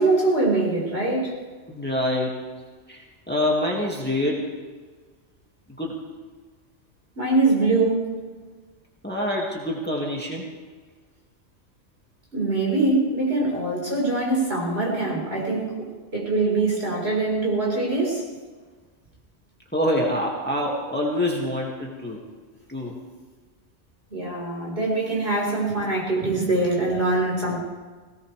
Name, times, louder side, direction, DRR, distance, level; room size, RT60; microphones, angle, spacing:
voice 1, 0.0-1.4 7.1-8.2 12.3-18.3 24.1-27.6, right 2 dB, 55° right, -3 dB, 4.9 m, -23 dB
voice 2, 1.7-2.3 2.9-3.0 3.3-4.4 5.8-6.0 9.0-10.5 19.7-22.2 22.7-23.0, left 1 dB, 10° left, -2 dB, 2.1 m, -25 dB
18.0 x 18.0 x 3.4 m, 1.4 s
omnidirectional pair, 1.2 m